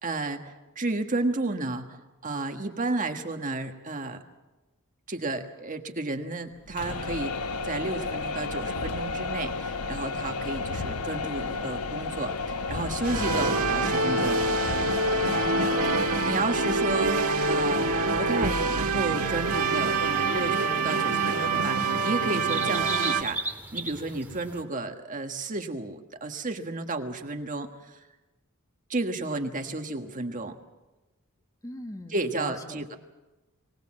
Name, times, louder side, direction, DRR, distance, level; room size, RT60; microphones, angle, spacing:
voice 1, 0.0-4.2 5.1-7.4 7.6-14.4 16.0-17.9 18.2-23.4 23.7-28.1 28.9-30.6 32.1-33.0, right 2 dB, 35° right, 5 dB, 1.4 m, -32 dB
sound 1, 6.7-18.5, left 4 dB, 85° left, 1.0 m, -33 dB
sound 2, 13.0-23.2, right 3 dB, 70° right, 1.8 m, -26 dB
voice 2, 15.5-16.5 31.6-32.8, left 1 dB, 15° left, 5 dB, 1.4 m, -42 dB
sound 3, 19.2-24.6, right 2 dB, 10° right, 2.1 m, -38 dB
23.5 x 18.5 x 7.6 m, 1.1 s
head